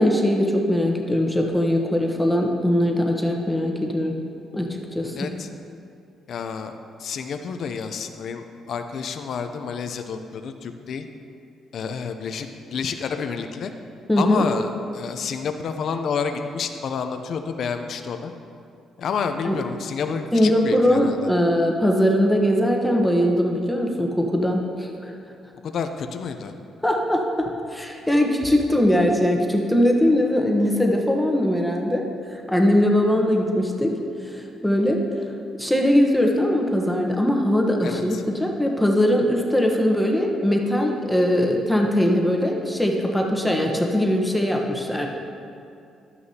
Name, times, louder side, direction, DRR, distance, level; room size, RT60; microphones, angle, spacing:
voice 1, 0.0-4.1 4.5-5.1 14.1-14.5 19.4-19.6 20.3-25.1 26.8-32.0 32.5-34.0 34.2-35.0 35.6-45.1, left 1 dB, 5° left, 1 dB, 1.1 m, -21 dB
voice 2, 5.2-5.5 6.3-6.7 7.0-11.1 11.7-13.7 14.2-18.3 19.0-21.2 25.6-26.5 37.8-38.2, left 6 dB, 65° left, 7 dB, 0.5 m, -29 dB
12.0 x 9.6 x 2.8 m, 2.5 s
cardioid pair, 90°, 0 cm